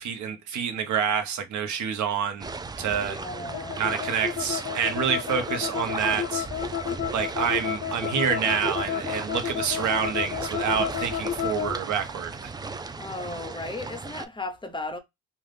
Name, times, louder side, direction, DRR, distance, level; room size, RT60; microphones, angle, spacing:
voice 1, 0.0-2.5 2.8-3.2 3.8-6.7 7.1-12.5, right 7 dB, 75° right, 0.9 m, -27 dB
sound 1, 2.4-14.3, right 4 dB, 15° right, 0.3 m, -37 dB
voice 2, 3.0-3.9 13.0-15.0, left 2 dB, 15° left, 0.8 m, -35 dB
sound 2, 3.5-11.8, left 9 dB, 60° left, 0.6 m, -31 dB
2.5 x 2.4 x 3.4 m
cardioid pair, 90°, 30 cm